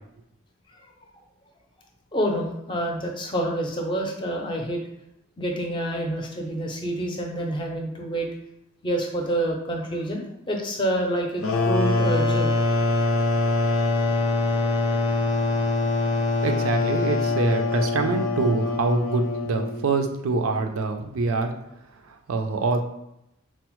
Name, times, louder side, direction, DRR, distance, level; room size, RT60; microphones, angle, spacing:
voice 1, 2.1-4.8 5.4-8.3 8.8-12.5, right 1 dB, 25° left, 1 dB, 0.5 m, -27 dB
sound 1, 11.4-19.9, left 2 dB, 90° left, 0.6 m, -23 dB
voice 2, 16.4-21.5 22.1-22.8, right 3 dB, 90° right, 5 dB, 0.4 m, -25 dB
4.3 x 2.0 x 3.0 m, 0.82 s
head